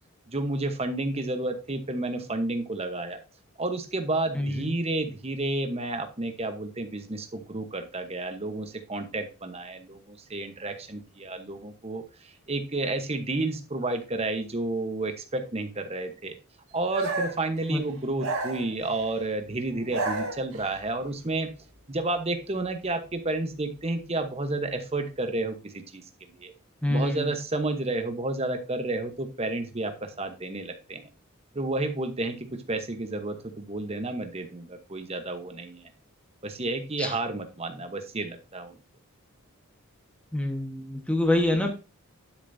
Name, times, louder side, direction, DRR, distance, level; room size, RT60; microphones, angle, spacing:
voice 1, 0.3-3.2 3.6-16.3 16.7-21.5 21.9-26.0 26.4-26.5 26.9-31.1 31.5-35.9 36.4-38.8, right 2 dB, 25° right, 7 dB, 1.0 m, -31 dB
voice 2, 4.3-4.7 17.7-17.8 26.8-27.3 37.0-37.2 40.3-41.7, left 1 dB, 5° left, 4 dB, 1.3 m, -26 dB
sound 1, 16.9-17.5 18.2-19.1 19.7-20.8, right 2 dB, 65° right, 2.1 m, -31 dB
11.5 x 6.7 x 2.7 m, 0.31 s
head